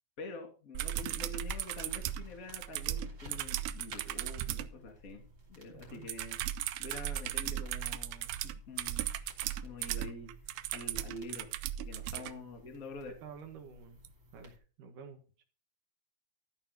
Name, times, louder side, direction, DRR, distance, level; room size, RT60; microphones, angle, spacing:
voice 1, 0.2-5.2 5.5-6.4 6.8-9.1 9.6-11.5 11.8-13.1, left 2 dB, 25° left, 4 dB, 2.1 m, -46 dB
sound 1, 0.7-4.7 6.1-12.3 14.0-14.1, right 12 dB, 85° right, 2.2 m, -37 dB
sound 2, 1.5-14.6, equal, 25° right, 3.1 m, -55 dB
voice 2, 5.7-6.1 12.0-12.4 13.2-15.4, right 6 dB, 55° right, 6 dB, 2.6 m, -51 dB
13.5 x 6.6 x 5.2 m, 0.35 s
omnidirectional pair, 5.3 m